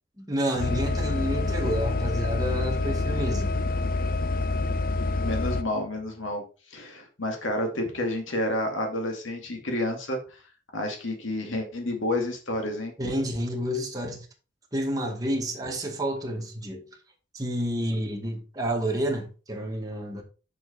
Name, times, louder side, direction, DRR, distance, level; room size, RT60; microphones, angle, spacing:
voice 1, 0.2-3.6 13.0-14.3 14.7-16.9 17.3-20.2, equal, 20° right, 2.0 m, -29 dB
sound 1, 0.6-5.6, left 2 dB, 45° left, 0.6 m, -27 dB
voice 2, 5.2-6.4 6.7-10.4 10.7-12.9, left 1 dB, 90° left, 2.5 m, -30 dB
7.3 x 6.4 x 4.3 m
head